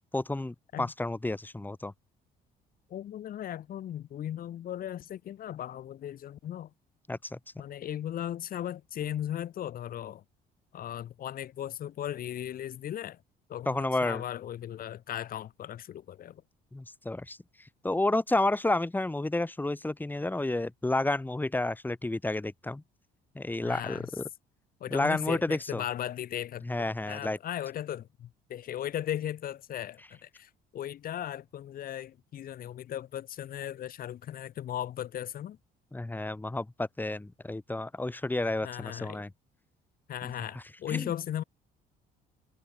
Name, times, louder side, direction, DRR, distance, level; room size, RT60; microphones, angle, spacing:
voice 1, 0.0-1.9 7.1-7.4 13.7-14.2 16.7-22.8 23.4-24.2 24.9-25.8 26.6-27.4 35.9-39.3 40.5-41.1, left 2 dB, 10° left, 3.8 m, -31 dB
voice 2, 2.9-6.7 7.6-10.2 10.7-13.2 13.5-16.4 23.6-24.1 24.8-35.6 38.6-39.2 40.1-41.4, left 11 dB, 60° left, 5.1 m, -37 dB
cardioid pair, 110°, 17 cm